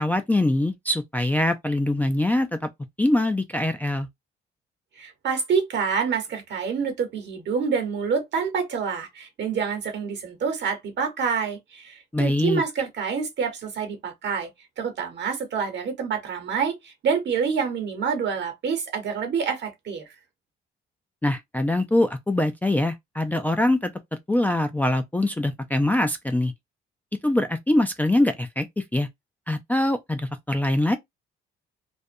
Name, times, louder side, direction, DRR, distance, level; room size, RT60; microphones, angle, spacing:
voice 1, 0.0-2.7 3.0-4.1 12.1-12.6 21.2-23.9 24.3-26.5 27.2-28.7 28.9-29.1 29.5-31.0, left 1 dB, 10° left, 0.3 m, -23 dB
voice 2, 5.0-14.5 14.8-20.0, right 6 dB, 60° right, 1.0 m, -27 dB
2.4 x 2.1 x 2.6 m
cardioid pair, 90°, 20 cm